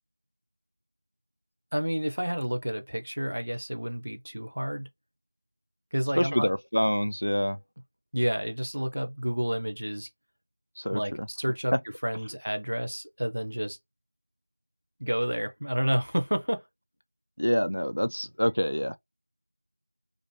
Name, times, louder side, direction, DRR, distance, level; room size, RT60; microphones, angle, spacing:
voice 1, 1.7-4.9 5.9-6.5 8.1-10.1 10.9-11.7 12.0-13.8 15.0-16.6, equal, 50° right, 0.5 m, -30 dB
voice 2, 6.2-7.6 10.8-11.3 11.7-11.8 17.4-19.0, equal, 90° left, 0.3 m, -26 dB
2.5 x 2.1 x 2.8 m
figure-of-eight pair, 180°, 0 cm